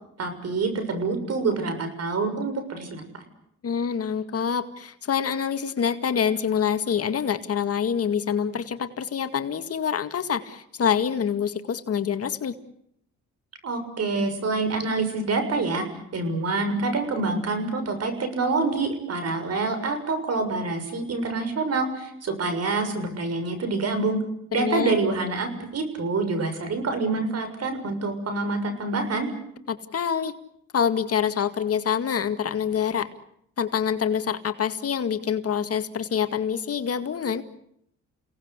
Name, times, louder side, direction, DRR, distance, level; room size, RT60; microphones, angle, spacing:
voice 1, 0.2-3.0 13.6-15.8 16.1-24.2 24.5-29.3, right 3 dB, 55° right, 9 dB, 6.9 m, -26 dB
voice 2, 3.6-12.5 24.5-25.0 29.7-30.3 30.7-33.1 33.6-37.4, left 7 dB, 50° left, 9 dB, 2.1 m, -26 dB
30.0 x 18.5 x 8.3 m, 0.72 s
cardioid pair, 90°, 30 cm